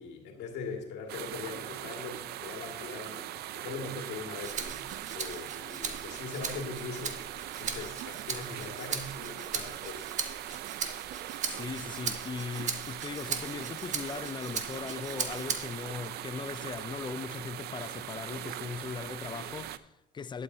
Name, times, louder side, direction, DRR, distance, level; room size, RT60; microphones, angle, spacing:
voice 1, 0.0-10.1 10.5-10.6, left 4 dB, 85° left, 2.1 m, -41 dB
sound 1, 1.1-19.8, right 13 dB, 75° right, 0.6 m, -41 dB
Rattle (instrument), 4.4-15.9 16.3-17.5, right 6 dB, 45° right, 1.3 m, -38 dB
voice 2, 11.4-20.4, left 5 dB, 25° left, 0.5 m, -39 dB
12.0 x 11.0 x 2.8 m
cardioid pair, 110°, 17 cm